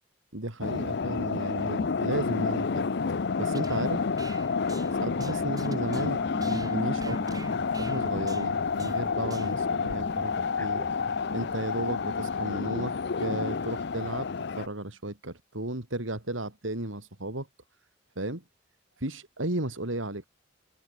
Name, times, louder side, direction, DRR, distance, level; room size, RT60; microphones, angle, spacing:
voice 1, 0.3-4.1 4.9-7.4 7.8-10.9 11.3-14.3 14.6-17.5 18.2-18.4 19.0-20.3, right 1 dB, 80° right, 3.6 m, -34 dB
sound 1, 0.6-14.7, left 5 dB, 60° left, 0.6 m, -29 dB
sound 2, 3.4-9.8, right 4 dB, 20° right, 6.9 m, -49 dB
sound 3, 4.6-11.6, equal, 10° left, 3.1 m, -41 dB
head